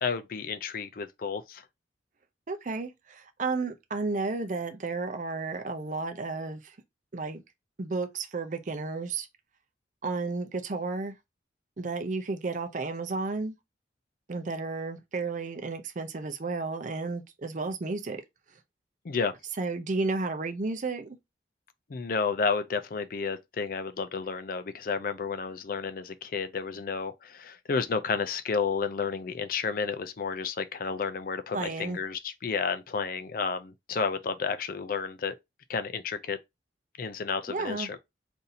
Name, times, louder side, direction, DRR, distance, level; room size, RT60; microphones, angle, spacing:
voice 1, 0.0-1.6 19.0-19.3 21.9-35.4 35.7-36.4 37.0-38.0, left 5 dB, 50° left, 0.4 m, -31 dB
voice 2, 2.5-6.8 7.1-7.4 7.8-9.3 10.0-11.1 11.8-13.5 14.3-18.2 19.6-21.2 31.5-32.0 37.5-37.9, right 3 dB, 45° right, 0.5 m, -32 dB
2.7 x 2.6 x 4.0 m
head